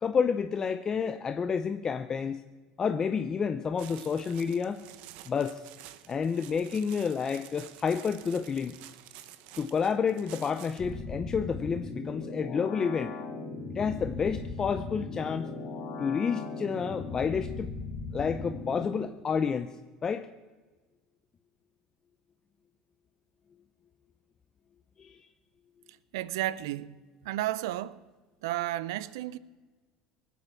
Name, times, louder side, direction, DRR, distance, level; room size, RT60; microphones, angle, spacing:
voice 1, 0.0-2.4 2.8-4.8 5.3-5.6 6.1-8.7 9.6-13.2 13.7-15.5 16.0-17.7 18.1-19.7 20.0-20.3 25.0-25.2, left 6 dB, 30° left, 0.6 m, -30 dB
sound 1, 3.8-10.9, right 13 dB, 70° right, 0.9 m, -50 dB
sound 2, 10.8-18.9, left 3 dB, 50° left, 3.4 m, -38 dB
voice 2, 25.9-27.0 27.2-28.0 28.4-29.4, right 14 dB, 90° right, 0.5 m, -33 dB
19.0 x 8.4 x 7.1 m
supercardioid pair, 115°, 2 cm